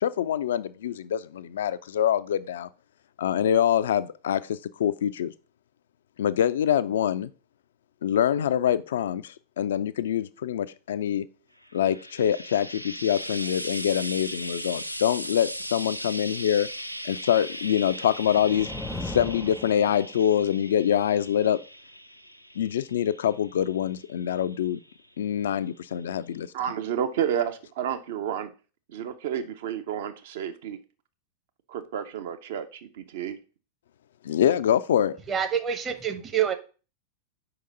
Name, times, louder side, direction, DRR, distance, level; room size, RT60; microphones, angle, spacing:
voice 1, 0.0-2.7 3.2-5.3 6.2-7.3 8.0-11.2 11.7-16.7 17.0-18.7 19.0-21.6 22.6-24.8 25.2-26.5 34.2-35.2, left 9 dB, 60° left, 0.3 m, -25 dB
Frying (food), 11.6-25.1 26.0-26.1, equal, 90° right, 0.3 m, -38 dB
sound 1, 17.6-20.5, left 2 dB, 5° left, 0.5 m, -38 dB
voice 2, 26.5-28.5 28.9-30.8 31.7-33.4, right 9 dB, 55° right, 0.7 m, -31 dB
voice 3, 35.3-36.5, right 8 dB, 25° right, 0.8 m, -26 dB
5.1 x 3.9 x 5.1 m
figure-of-eight pair, 90°, 0 cm